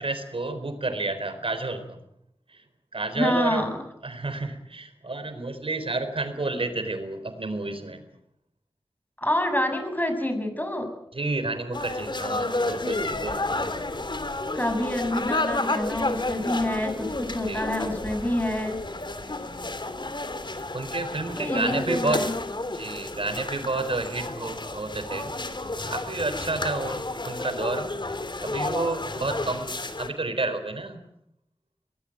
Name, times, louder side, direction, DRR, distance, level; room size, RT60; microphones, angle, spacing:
voice 1, 0.0-2.0 2.5-2.6 2.9-3.6 4.0-8.0 11.1-13.4 17.5-17.7 20.7-22.2 22.7-25.3 25.9-27.9 28.4-29.7 30.0-31.0, right 2 dB, 70° right, 9 dB, 4.2 m, -30 dB
voice 2, 3.1-3.7 9.2-10.9 14.5-18.8 21.3-22.3, left 1 dB, 20° left, 7 dB, 6.8 m, -27 dB
sound 1, 11.7-30.1, left 2 dB, 55° left, 2.8 m, -31 dB
23.0 x 19.5 x 9.1 m, 0.79 s
wide cardioid pair, 40°, 10 cm